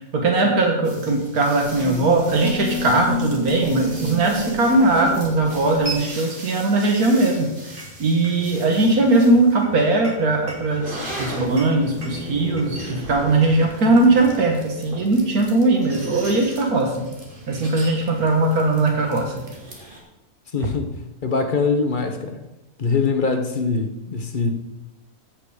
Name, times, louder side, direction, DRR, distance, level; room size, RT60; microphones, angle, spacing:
voice 1, 0.1-17.0 17.5-19.4, right 2 dB, 85° right, 2 dB, 2.0 m, -19 dB
sound 1, 0.8-20.0, equal, 35° right, 2.4 m, -34 dB
voice 2, 20.5-20.9 21.2-22.4 22.8-24.5, left 4 dB, 40° left, 6 dB, 1.1 m, -23 dB
15.0 x 5.9 x 5.0 m, 0.94 s
omnidirectional pair, 1.5 m